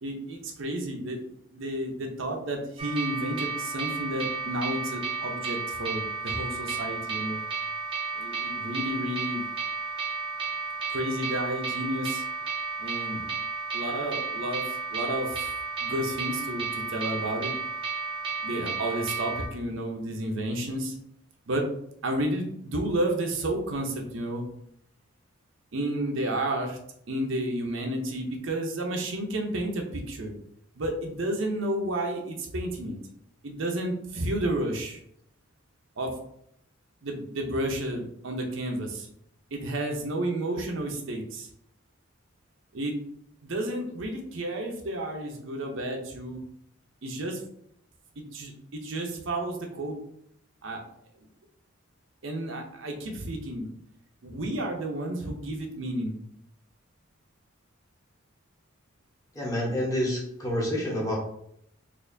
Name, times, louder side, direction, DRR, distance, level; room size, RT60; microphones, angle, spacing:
voice 1, 0.0-1.2 1.5-7.4 8.2-9.4 10.9-12.2 12.8-13.3 13.7-14.6 14.9-15.5 15.8-17.5 18.4-21.0 21.5-21.7 22.0-24.4 25.7-26.8 27.1-30.3 30.8-33.0 33.4-35.0 36.0-36.1 37.0-39.1 39.5-41.5 42.7-42.9 43.4-46.4 47.0-47.4 48.3-50.0 50.6-50.8 52.2-53.7 54.2-56.2, right 1 dB, 65° right, 2 dB, 0.6 m, -31 dB
sound 1, 2.8-19.5, right 5 dB, 25° right, 0.7 m, -33 dB
voice 2, 59.3-61.2, equal, 15° left, -4 dB, 1.0 m, -28 dB
4.3 x 2.6 x 2.6 m, 0.71 s
head